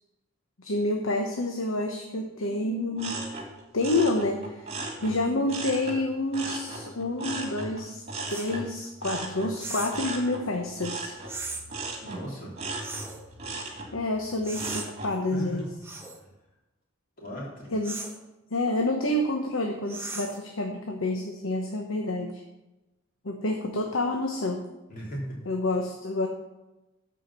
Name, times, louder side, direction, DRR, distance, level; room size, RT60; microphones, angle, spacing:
voice 1, 0.6-3.2 3.7-4.7 5.0-8.0 8.3-11.2 13.9-15.6 17.7-18.0 18.5-22.4 23.2-24.6 25.5-26.3, left 2 dB, 80° left, 2 dB, 1.0 m, -28 dB
sound 1, 3.0-6.0 6.3-15.2 15.6-16.1, right 2 dB, 30° right, 2.0 m, -37 dB
sound 2, 8.3-8.5 9.6-10.0 11.3-11.6 12.8-13.2 14.4-14.9 15.8-16.2 17.8-18.2 19.9-20.4, right 3 dB, 10° right, 1.2 m, -37 dB
voice 2, 12.0-12.6 15.3-15.7 17.2-17.8 24.9-25.4, equal, 45° left, -5 dB, 3.8 m, -36 dB
13.0 x 5.1 x 6.0 m, 1.0 s
head